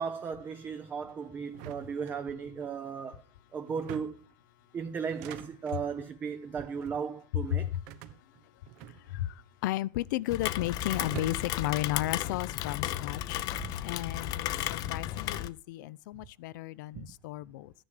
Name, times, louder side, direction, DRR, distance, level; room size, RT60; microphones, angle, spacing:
voice 1, 0.0-3.2 3.5-4.2 4.7-7.8 13.6-13.8 16.9-17.1, right 6 dB, 20° right, 0.7 m, -36 dB
sound 1, 1.5-2.7 3.7-4.3 5.0-5.8 6.6-7.0 7.9-9.4 9.6-10.4 10.9-11.7, right 12 dB, 55° right, 0.9 m, -46 dB
voice 2, 7.5-7.8 8.9-13.4 13.8-17.7, left 15 dB, 80° left, 0.7 m, -34 dB
Rain, 10.3-15.5, left 13 dB, 40° left, 0.7 m, -34 dB
14.0 x 10.0 x 5.1 m
supercardioid pair, 170°, 10 cm